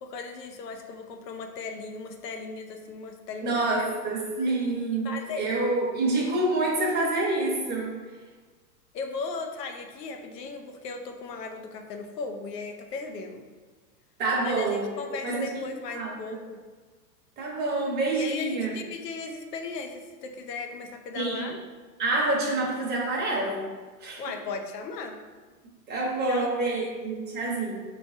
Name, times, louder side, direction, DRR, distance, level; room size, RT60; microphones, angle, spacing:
voice 1, 0.0-3.9 5.0-5.5 8.9-13.4 14.4-16.6 18.2-21.6 24.2-25.2 26.3-26.9, left 4 dB, 75° left, 4 dB, 0.8 m, -37 dB
voice 2, 3.4-8.0 14.2-14.9 15.2-16.4 17.4-18.7 21.1-21.5 22.0-23.6 24.0-24.2 25.9-27.8, right 2 dB, 20° right, -3 dB, 0.9 m, -27 dB
5.3 x 3.2 x 2.7 m, 1.4 s
hypercardioid pair, 140°, 49 cm